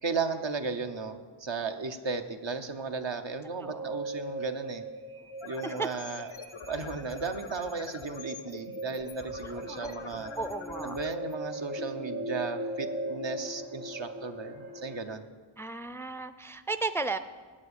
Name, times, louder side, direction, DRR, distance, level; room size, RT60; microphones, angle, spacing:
voice 1, 0.0-4.8 5.4-6.3 6.7-10.3 10.8-15.3, right 4 dB, 70° right, 7 dB, 0.9 m, -35 dB
voice 2, 3.6-3.9 5.6-5.9 9.7-9.9 10.3-11.0 15.6-17.2, right 3 dB, 5° left, 11 dB, 0.4 m, -34 dB
sound 1, 3.6-15.0, right 1 dB, 50° right, 1.6 m, -39 dB
sound 2, 5.2-12.3, left 7 dB, 90° left, 0.7 m, -45 dB
8.6 x 7.5 x 8.3 m, 1.5 s
wide cardioid pair, 50°, 46 cm